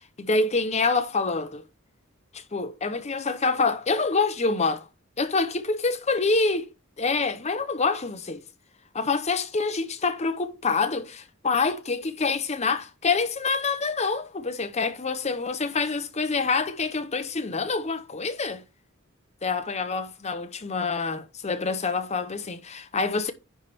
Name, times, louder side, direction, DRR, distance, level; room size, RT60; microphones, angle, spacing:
voice 1, 0.2-1.6 2.3-4.9 5.2-6.7 7.0-8.4 8.9-18.6 19.4-23.3, left 4 dB, 35° left, 0.8 m, -26 dB
10.0 x 3.4 x 4.3 m
head